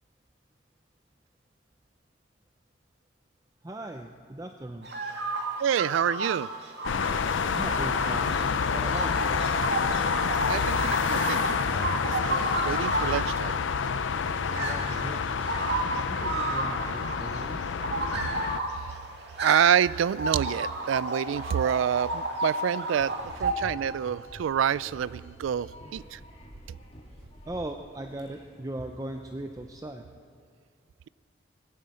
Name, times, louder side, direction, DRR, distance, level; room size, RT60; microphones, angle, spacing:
voice 1, 3.6-4.9 7.5-8.4 8.7-9.4 14.5-15.5 16.1-17.7 27.4-30.0, right 1 dB, 20° right, 5 dB, 0.5 m, -38 dB
sound 1, 4.8-23.5, right 2 dB, 65° right, 2.0 m, -33 dB
voice 2, 5.6-6.5 10.5-11.6 12.0-13.6 19.4-26.2 26.7-26.8, right 9 dB, 90° right, 20 dB, 0.3 m, -27 dB
sound 2, 6.8-18.6, left 5 dB, 85° left, 0.5 m, -28 dB
sound 3, 22.9-29.7, equal, 30° left, 2.1 m, -49 dB
20.0 x 9.2 x 7.6 m, 2.2 s
head